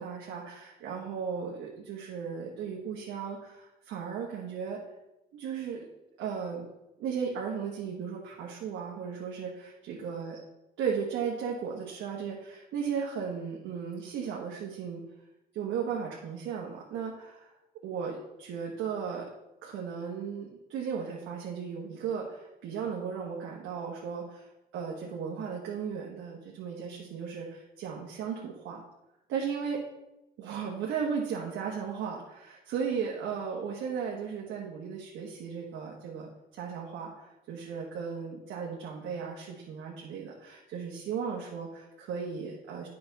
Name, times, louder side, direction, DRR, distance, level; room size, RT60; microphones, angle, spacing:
voice 1, 0.0-4.8 5.3-5.9 6.2-6.6 7.0-10.4 10.8-15.0 15.5-17.5 17.8-19.3 19.6-24.5 24.7-28.8 29.3-29.8 30.4-42.9, right 6 dB, 90° right, -3 dB, 1.2 m, -36 dB
8.7 x 6.0 x 4.0 m, 0.94 s
cardioid pair, 90°, 20 cm